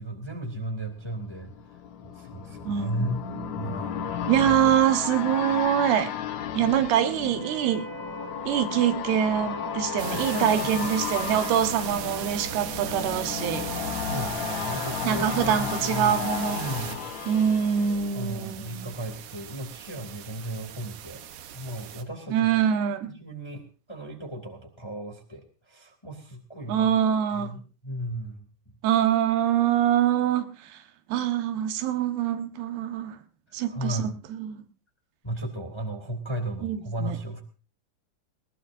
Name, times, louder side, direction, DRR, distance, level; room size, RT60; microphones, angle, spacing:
voice 1, 0.0-1.5 2.0-3.2 3.5-4.2 10.1-10.9 14.1-16.2 16.4-17.0 18.1-21.2 21.5-22.5 23.1-23.6 23.9-26.9 27.3-28.4 33.7-34.2 35.2-37.4, right 1 dB, 10° left, 2.2 m, -35 dB
sound 1, 1.0-18.8 19.2-19.3, left 9 dB, 70° left, 1.8 m, -34 dB
voice 2, 2.7-3.5 4.3-6.1 6.5-7.9 8.5-13.7 15.0-16.6 17.3-18.9 22.3-23.1 26.7-27.6 28.8-30.8 31.1-33.2 33.5-34.6 36.6-37.2, right 10 dB, 85° right, 3.3 m, -25 dB
Wind instrument woodwind instrument, 7.3-14.0, right 3 dB, 10° right, 3.4 m, -42 dB
sound 2, 10.0-22.0, right 10 dB, 65° right, 2.2 m, -38 dB
20.5 x 19.5 x 2.6 m
omnidirectional pair, 4.5 m